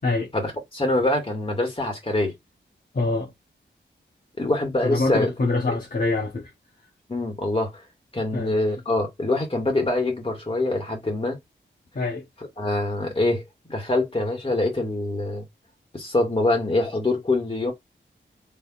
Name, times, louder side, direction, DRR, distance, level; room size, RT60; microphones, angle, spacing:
voice 1, 0.3-2.3 4.4-5.3 7.1-7.7 8.1-11.4 12.6-13.4 13.7-15.4 15.9-17.7, left 2 dB, 30° left, 2.1 m, -24 dB
voice 2, 2.9-3.3 4.8-6.5 8.3-8.5 11.9-12.2, left 3 dB, 45° left, 1.0 m, -25 dB
3.5 x 3.3 x 2.4 m
wide cardioid pair, 70°, 20 cm